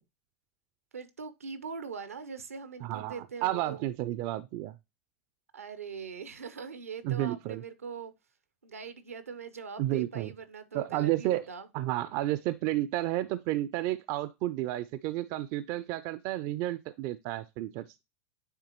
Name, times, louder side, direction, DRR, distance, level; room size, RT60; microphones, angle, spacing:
voice 1, 0.9-3.8 5.5-8.1 8.6-11.7, right 5 dB, 85° right, 0.8 m, -42 dB
voice 2, 2.8-4.7 7.0-7.6 9.8-10.3 10.7-11.5 11.7-18.0, right 15 dB, 50° right, 0.4 m, -31 dB
9.3 x 3.6 x 2.9 m
hypercardioid pair, 85°, 8 cm